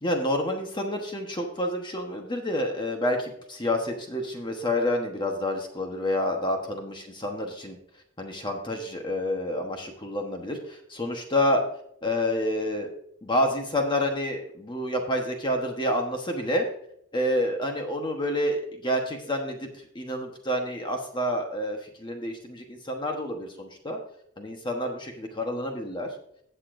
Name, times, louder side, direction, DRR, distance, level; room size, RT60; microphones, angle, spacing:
voice 1, 0.0-7.8 8.2-11.6 12.0-12.9 13.2-16.7 17.1-24.0 24.4-26.2, left 1 dB, 25° left, 3 dB, 1.1 m, -28 dB
18.0 x 6.7 x 2.6 m, 0.70 s
head